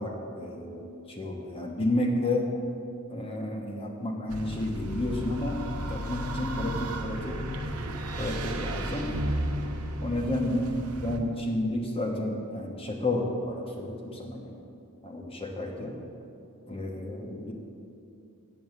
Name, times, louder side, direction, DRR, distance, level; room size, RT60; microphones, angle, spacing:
voice 1, 0.0-2.5 3.1-5.6 5.9-7.4 8.2-9.1 10.0-10.6 11.0-14.6 15.0-16.0 16.7-17.5, left 1 dB, 25° left, 0 dB, 1.1 m, -31 dB
sound 1, 4.3-11.2, equal, 75° right, 1.1 m, -33 dB
9.0 x 7.8 x 8.1 m, 2.6 s
head